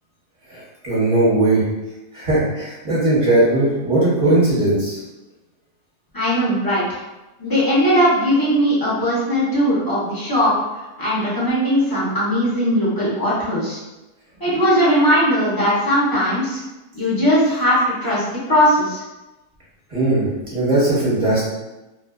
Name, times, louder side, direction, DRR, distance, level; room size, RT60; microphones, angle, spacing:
voice 1, 0.5-1.6 2.1-5.0 19.9-21.4, right 2 dB, 30° right, -9 dB, 0.7 m, -18 dB
voice 2, 6.1-7.0 7.4-10.5 11.0-13.8 14.4-16.6 16.9-19.0, equal, 30° left, -10 dB, 0.4 m, -19 dB
2.5 x 2.2 x 2.3 m, 1.0 s
omnidirectional pair, 1.6 m